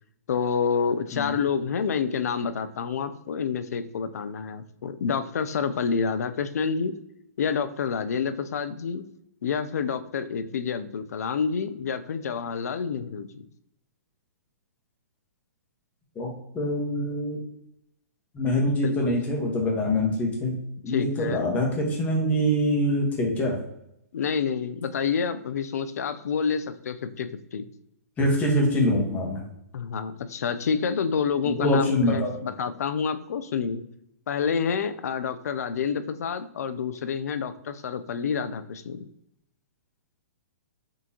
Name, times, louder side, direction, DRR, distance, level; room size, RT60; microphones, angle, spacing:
voice 1, 0.3-7.0 7.4-9.0 9.4-13.4 18.8-19.1 20.9-21.5 24.1-27.7 29.7-33.9 34.3-39.0, left 6 dB, 70° left, 11 dB, 0.4 m, -28 dB
voice 2, 16.1-17.4 18.3-20.6 20.8-23.6 28.2-29.4 31.4-32.3, left 1 dB, 15° left, -1 dB, 1.1 m, -24 dB
3.7 x 3.6 x 2.8 m, 0.78 s
hypercardioid pair, 130°, 9 cm